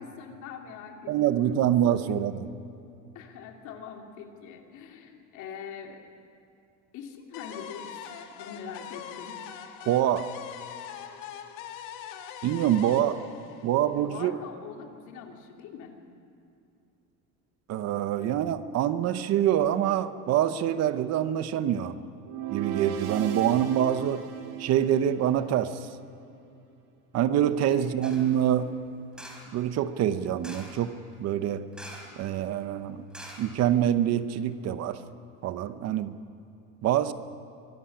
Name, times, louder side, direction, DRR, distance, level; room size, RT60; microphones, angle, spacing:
voice 1, 0.0-2.2 3.1-6.0 6.9-9.4 14.0-16.0 27.6-28.0, left 7 dB, 65° left, 3 dB, 2.8 m, -43 dB
voice 2, 1.1-2.5 9.9-10.3 12.4-13.2 13.6-14.4 17.7-22.0 22.5-24.2 24.6-25.8 27.1-28.7 29.5-31.7 32.2-33.0 33.4-35.0 35.4-36.2 36.8-37.1, right 10 dB, 50° right, 12 dB, 1.0 m, -25 dB
sound 1, 7.3-14.3, left 9 dB, 80° left, 1.9 m, -42 dB
sound 2, 22.2-25.5, right 9 dB, 75° right, 2.7 m, -36 dB
sound 3, 28.0-28.4 29.1-29.6 30.4-30.8 31.7-32.2 32.5-32.6 33.1-34.0 34.4-34.5, equal, 5° right, 3.7 m, -45 dB
23.5 x 14.0 x 9.9 m, 2.6 s
cardioid pair, 145°, 32 cm